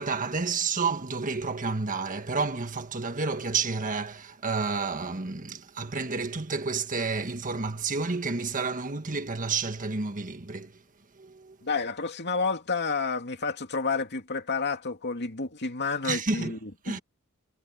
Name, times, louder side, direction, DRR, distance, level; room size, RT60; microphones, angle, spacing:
voice 1, 0.0-10.7 11.2-11.6 16.0-16.5 16.8-17.0, right 4 dB, 35° right, 1.5 m, -30 dB
voice 2, 11.6-17.0, left 4 dB, 50° left, 2.6 m, -30 dB
head